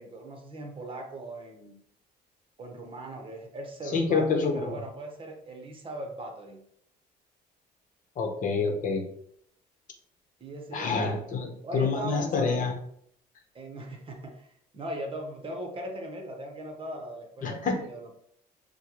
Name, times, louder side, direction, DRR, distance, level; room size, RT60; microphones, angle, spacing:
voice 1, 0.0-1.7 2.6-6.6 10.4-11.2 11.6-12.7 13.5-14.5 14.7-18.1, right 1 dB, 30° right, 3 dB, 1.0 m, -39 dB
voice 2, 3.9-4.7 8.2-9.0 10.7-12.8 17.4-17.8, left 4 dB, 50° left, 4 dB, 0.9 m, -27 dB
6.6 x 2.2 x 3.0 m, 0.68 s
cardioid pair, 110°, 17 cm